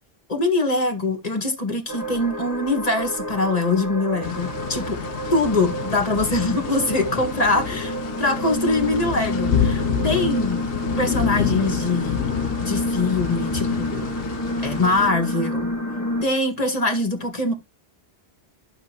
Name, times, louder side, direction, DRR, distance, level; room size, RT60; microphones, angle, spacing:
voice 1, 0.3-5.0 5.3-10.6 11.0-12.3 12.6-14.1 14.6-15.7 16.2-17.5, left 2 dB, 35° left, 2.0 m, -23 dB
sound 1, 1.9-16.2, equal, 15° left, 1.6 m, -29 dB
sound 2, 4.2-15.1, left 9 dB, 65° left, 0.9 m, -28 dB
11.5 x 6.6 x 3.0 m
omnidirectional pair, 1.1 m